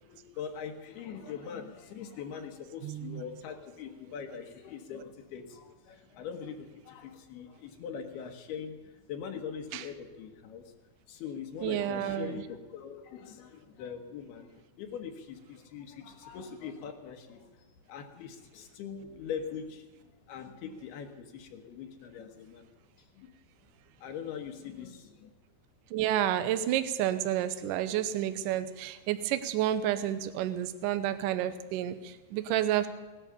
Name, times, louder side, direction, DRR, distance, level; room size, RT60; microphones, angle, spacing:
voice 1, 0.1-8.8 9.1-10.6 11.1-14.5 14.8-17.5 17.9-19.8 20.3-22.7 23.2-23.3 24.0-25.3, left 7 dB, 80° left, 4 dB, 3.3 m, -42 dB
voice 2, 2.8-3.2 9.7-9.9 11.6-12.5 25.9-32.9, right 11 dB, 75° right, 11 dB, 2.1 m, -30 dB
18.0 x 11.0 x 7.0 m, 1.2 s
omnidirectional pair, 4.6 m